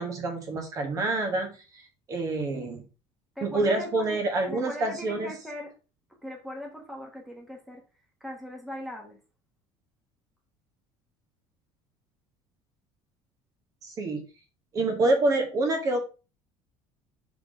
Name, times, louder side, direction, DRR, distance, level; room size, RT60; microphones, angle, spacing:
voice 1, 0.0-1.8 2.1-2.8 3.4-5.3 13.8-14.2 14.7-16.0, right 2 dB, 30° right, 5 dB, 1.5 m, -27 dB
voice 2, 3.3-4.2 4.5-5.7 6.2-7.8 8.2-9.2, equal, ahead, 0 dB, 1.4 m, -39 dB
5.9 x 4.6 x 5.1 m, 0.33 s
cardioid pair, 170°, 12 cm